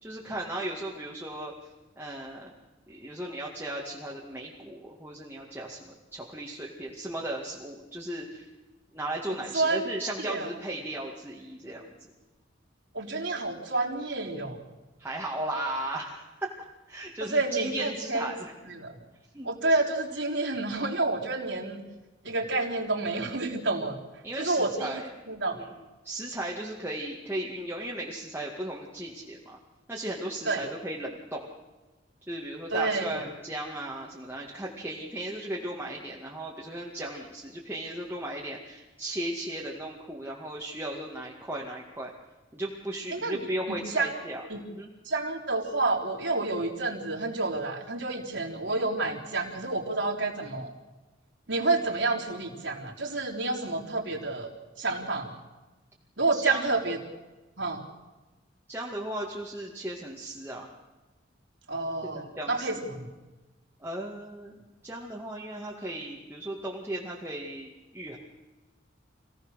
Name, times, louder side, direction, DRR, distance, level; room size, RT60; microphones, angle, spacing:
voice 1, 0.0-1.5 2.0-2.5 2.9-8.5 8.9-11.9 15.0-16.5 16.9-18.5 19.3-19.5 24.2-25.1 25.5-25.7 26.0-29.6 29.9-31.4 32.2-42.1 42.5-44.9 56.3-56.8 58.7-60.7 62.0-62.8 63.8-64.5 64.8-68.2, right 1 dB, 10° right, -3 dB, 2.1 m, -36 dB
voice 2, 9.5-9.9 10.2-10.5 12.9-14.6 17.3-18.3 18.8-18.9 19.4-21.8 22.2-24.0 24.4-25.0 25.3-25.6 30.5-30.7 32.7-33.2 43.1-44.1 44.5-44.6 45.1-50.7 51.5-54.5 54.8-55.3 56.2-57.0 57.6-57.8 61.7-63.1, right 3 dB, 70° right, -2 dB, 3.7 m, -29 dB
27.0 x 17.0 x 6.5 m, 1.1 s
head